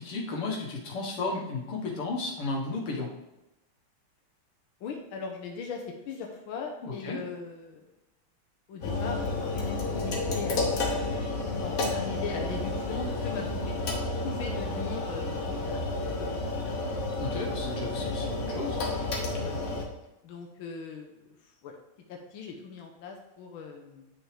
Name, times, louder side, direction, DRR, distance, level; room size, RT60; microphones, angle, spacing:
voice 1, 0.0-3.1 6.8-7.2 17.2-18.8, left 3 dB, 90° left, -1 dB, 2.4 m, -33 dB
voice 2, 4.8-7.8 8.7-11.1 11.5-15.8 16.2-16.9 19.4-19.6 20.2-21.3 21.6-21.7 22.1-24.1, left 5 dB, 70° left, 1 dB, 1.7 m, -40 dB
sound 1, 8.8-19.8, left 2 dB, 45° left, 1.3 m, -31 dB
9.7 x 6.3 x 3.3 m, 0.96 s
omnidirectional pair, 2.4 m